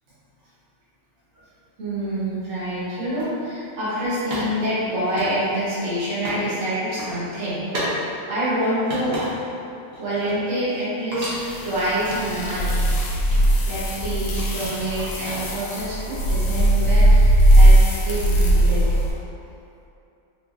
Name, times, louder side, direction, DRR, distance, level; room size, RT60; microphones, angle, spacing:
voice 1, 1.8-9.2 10.0-11.3 11.6-12.9 13.3-17.8 18.0-18.9, right 1 dB, 70° right, -11 dB, 1.4 m, -26 dB
sound 1, 3.2-3.3 4.3-6.4 6.8-7.1 7.7-8.0 8.4-9.6 9.9-10.8 11.1-12.6 13.0-14.0 14.4-15.7, equal, 50° right, 0.9 m, -34 dB
sound 2, 11.2-19.1, right 1 dB, 75° left, 1.0 m, -18 dB
3.3 x 3.2 x 2.4 m, 2.7 s
omnidirectional pair, 1.4 m